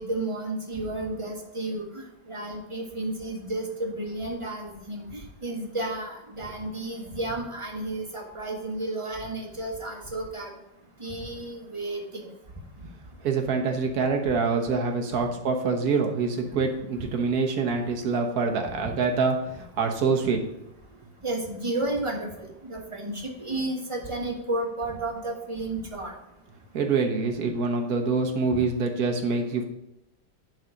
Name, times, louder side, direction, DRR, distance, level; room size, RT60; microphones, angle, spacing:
voice 1, 0.0-10.5 11.0-12.3 21.2-26.1 28.5-28.6, right 2 dB, 20° right, 0 dB, 1.3 m, -32 dB
voice 2, 13.2-20.4 26.7-29.6, right 4 dB, 55° right, 3 dB, 1.5 m, -25 dB
10.5 x 4.1 x 5.1 m, 0.87 s
omnidirectional pair, 2.0 m